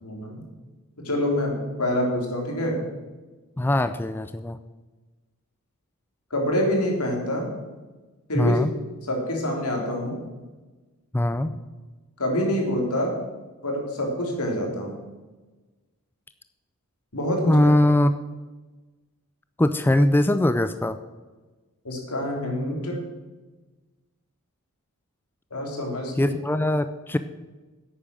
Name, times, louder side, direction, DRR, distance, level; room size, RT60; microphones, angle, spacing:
voice 1, 0.0-0.4 1.0-2.8 6.3-7.5 8.3-8.6 9.1-10.2 12.2-13.2 13.6-15.0 17.1-17.6 21.8-23.0 25.5-26.2, equal, 80° left, 0 dB, 3.5 m, -26 dB
voice 2, 3.6-4.6 8.3-8.7 11.1-11.5 17.5-18.1 19.6-21.0 26.2-27.2, left 1 dB, 10° left, 11 dB, 0.3 m, -21 dB
10.5 x 8.6 x 6.3 m, 1.2 s
head